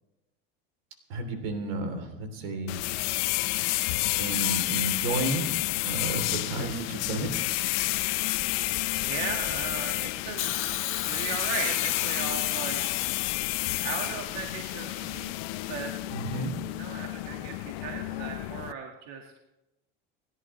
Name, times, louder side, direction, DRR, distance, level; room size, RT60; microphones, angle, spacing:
voice 1, 1.1-2.8 4.2-5.5 5.8-7.3 16.1-16.5, right 2 dB, 85° right, 5 dB, 3.4 m, -32 dB
sound 1, 2.7-18.7, left 20 dB, 75° left, 0.6 m, -30 dB
voice 2, 8.6-10.6 10.9-13.4 13.8-15.4 15.7-16.2 16.7-19.3, right 6 dB, 60° right, 2 dB, 1.9 m, -37 dB
Hiss, 10.4-14.5 15.5-15.6, left 12 dB, 45° left, 1.3 m, -35 dB
28.5 x 11.0 x 3.2 m, 0.96 s
supercardioid pair, 130°, 29 cm